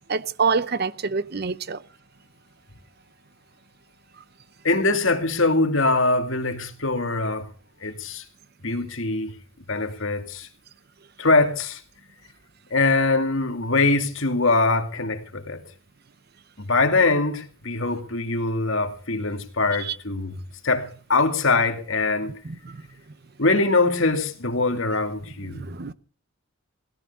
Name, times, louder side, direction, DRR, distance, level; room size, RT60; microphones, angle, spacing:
voice 1, 0.1-1.8 19.8-20.0 22.4-22.8 25.5-25.9, right 5 dB, 45° right, 0.7 m, -26 dB
voice 2, 4.6-7.5 7.8-8.2 8.6-9.3 9.7-10.5 11.2-11.8 12.7-15.6 16.6-20.4 20.6-22.3 23.4-25.6, left 3 dB, 65° left, 2.4 m, -23 dB
17.5 x 13.0 x 5.4 m
head